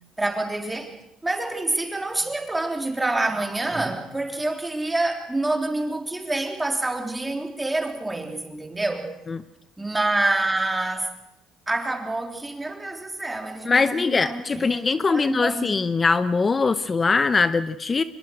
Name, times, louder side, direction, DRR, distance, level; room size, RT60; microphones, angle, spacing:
voice 1, 0.2-0.9 1.2-9.1 9.8-11.1 11.7-14.8 15.1-15.7, right 2 dB, 15° right, 4 dB, 3.5 m, -27 dB
voice 2, 13.6-18.0, left 4 dB, 30° left, 13 dB, 0.8 m, -22 dB
23.5 x 21.5 x 6.3 m, 0.84 s
cardioid pair, 95°, 0 cm